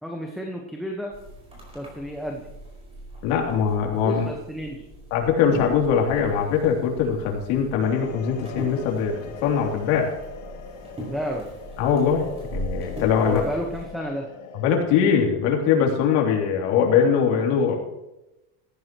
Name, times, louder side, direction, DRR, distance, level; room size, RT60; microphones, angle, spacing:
voice 1, 0.0-1.1 1.7-2.5 3.9-4.8 11.1-11.5 13.2-14.3, equal, ahead, 1 dB, 1.2 m, -31 dB
sound 1, 1.1-13.8, equal, 15° right, 5.2 m, -39 dB
voice 2, 3.2-4.3 5.1-10.1 11.8-12.2 12.5-13.4 14.5-17.8, left 7 dB, 75° left, 0 dB, 3.2 m, -22 dB
sound 2, 7.8-14.8, left 5 dB, 50° left, 1.7 m, -41 dB
18.0 x 14.0 x 3.1 m, 0.98 s
cardioid pair, 140°, 36 cm